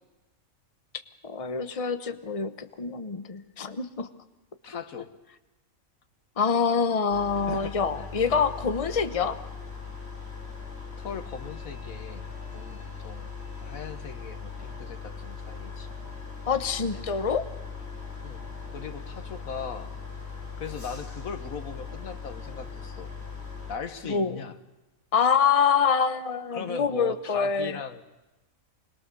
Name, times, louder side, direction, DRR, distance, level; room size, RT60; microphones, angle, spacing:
voice 1, 1.2-4.1 6.4-9.4 16.5-17.4 24.1-24.4 25.1-27.8, left 6 dB, 30° left, 10 dB, 1.0 m, -26 dB
voice 2, 4.6-5.1 7.5-8.4 11.0-13.3 13.6-15.9 18.2-18.4 18.7-19.9 20.6-23.1 23.7-24.6 26.5-28.0, left 5 dB, 90° left, 9 dB, 1.8 m, -39 dB
sound 1, 7.1-23.8, left 5 dB, 50° left, 3.8 m, -39 dB
25.5 x 21.0 x 6.9 m, 1.0 s
omnidirectional pair, 1.4 m